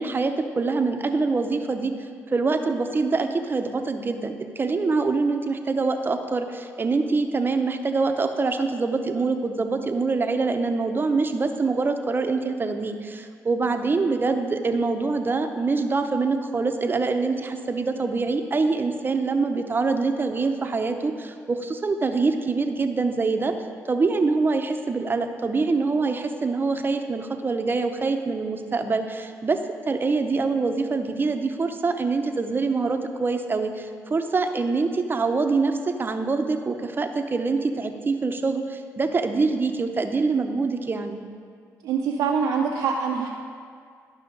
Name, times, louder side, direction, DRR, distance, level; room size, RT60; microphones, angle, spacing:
voice 1, 0.0-1.9 2.3-23.5 23.9-41.2, right 4 dB, 35° right, 6 dB, 0.7 m, -25 dB
voice 2, 41.8-43.3, right 6 dB, 90° right, -2 dB, 0.6 m, -24 dB
12.0 x 5.6 x 3.8 m, 2.1 s
cardioid pair, 70°, 6 cm